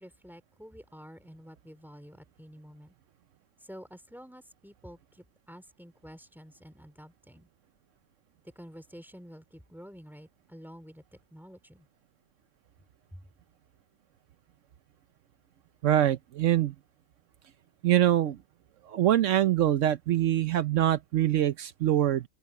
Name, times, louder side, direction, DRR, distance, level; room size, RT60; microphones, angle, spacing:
voice 1, 0.0-2.9 3.6-7.5 8.5-11.9 13.1-13.2, equal, ahead, 2.9 m, -49 dB
voice 2, 15.8-16.7 17.8-18.4 18.9-22.2, right 12 dB, 75° right, 1.0 m, -24 dB
open air
omnidirectional pair, 1.3 m